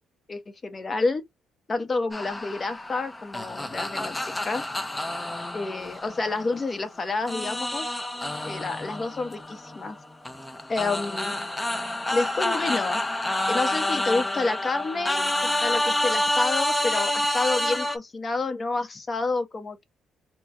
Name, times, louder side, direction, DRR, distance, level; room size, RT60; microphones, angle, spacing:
voice 1, 0.3-1.2 1.7-4.2 4.4-4.6 5.5-7.9 8.4-10.0 10.7-11.3 12.1-13.0 13.5-15.3 15.6-19.8, left 3 dB, 35° left, 1.1 m, -29 dB
sound 1, 2.1-6.8 7.3-18.0, left 1 dB, 15° left, 0.7 m, -28 dB
4.3 x 2.2 x 2.7 m
cardioid pair, 90°, 0 cm